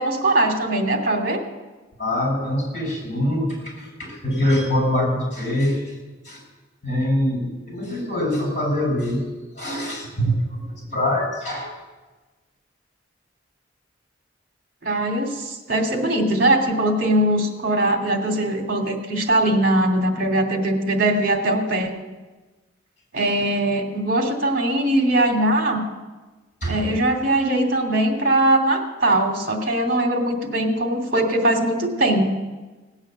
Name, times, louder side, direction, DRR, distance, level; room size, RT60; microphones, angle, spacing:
voice 1, 0.0-1.4 14.8-21.9 23.1-25.8 26.7-32.3, right 1 dB, 50° right, 2 dB, 2.7 m, -21 dB
voice 2, 2.0-5.8 6.2-6.4 6.8-9.2 9.6-10.6 10.9-11.7 26.6-26.8, left 1 dB, 40° left, -1 dB, 7.0 m, -24 dB
17.5 x 8.9 x 7.7 m, 1.2 s
head